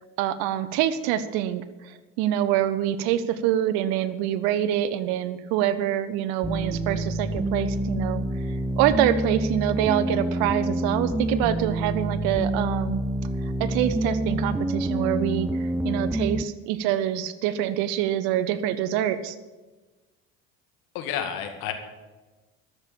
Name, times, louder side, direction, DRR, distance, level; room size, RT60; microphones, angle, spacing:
voice 1, 0.0-8.2 8.8-13.0 13.4-19.3, right 11 dB, 75° right, 12 dB, 0.9 m, -26 dB
sound 1, 6.4-16.4, right 1 dB, 5° right, 0.4 m, -27 dB
voice 2, 20.9-21.7, left 9 dB, 75° left, 5 dB, 2.1 m, -30 dB
13.0 x 6.9 x 8.7 m, 1.2 s
supercardioid pair, 85°, 36 cm